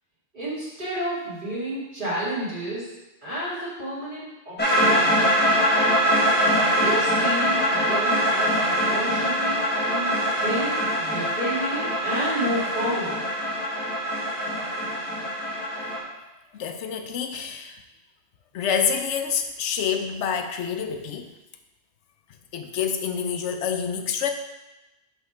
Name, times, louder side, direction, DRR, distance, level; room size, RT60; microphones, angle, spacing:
voice 1, 0.3-2.9 3.2-5.2 6.7-13.2, right 1 dB, 45° right, -9 dB, 2.3 m, -31 dB
sound 1, 4.6-16.0, equal, 10° left, 1.2 m, -23 dB
voice 2, 16.5-17.8 18.5-21.3 22.5-24.3, left 7 dB, 80° left, 6 dB, 0.9 m, -27 dB
5.4 x 3.6 x 5.6 m, 1.0 s
omnidirectional pair, 1.2 m